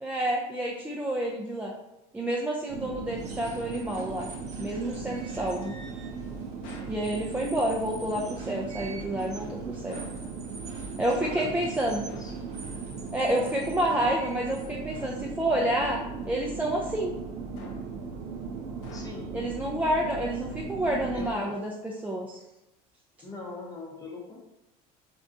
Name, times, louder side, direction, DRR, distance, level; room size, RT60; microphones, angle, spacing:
voice 1, 0.0-1.8 2.1-4.3 4.6-5.8 6.9-10.0 11.0-12.2 13.1-16.0 16.3-17.1 19.3-22.4, right 1 dB, 10° right, -2 dB, 0.3 m, -29 dB
sound 1, 2.7-21.3, right 5 dB, 70° right, 0.5 m, -38 dB
sound 2, 3.1-15.8, right 4 dB, 40° right, 0.8 m, -48 dB
sound 3, 6.6-7.1 9.9-10.3 12.1-12.5 14.9-15.4 15.8-16.2 17.6-18.0 18.8-19.4 21.2-21.8, left 3 dB, 75° left, 0.6 m, -48 dB
voice 2, 8.1-8.6 11.2-11.7 12.0-12.5 18.9-19.3 21.1-21.5 23.2-24.4, left 3 dB, 20° left, -2 dB, 0.7 m, -42 dB
3.6 x 2.3 x 2.5 m, 0.92 s
supercardioid pair, 90°, 18 cm